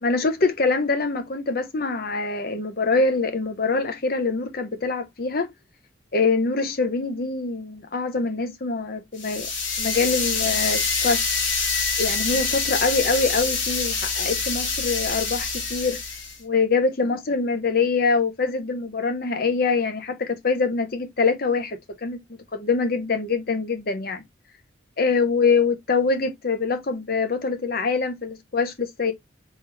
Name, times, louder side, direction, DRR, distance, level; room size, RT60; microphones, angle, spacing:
voice 1, 0.0-5.5 6.1-9.5 9.8-11.3 12.0-16.0 16.4-22.2 22.5-24.2 25.0-29.1, left 4 dB, 50° left, 0.8 m, -24 dB
sound 1, 9.2-16.4, left 4 dB, 80° left, 1.7 m, -26 dB
3.6 x 3.1 x 3.3 m
head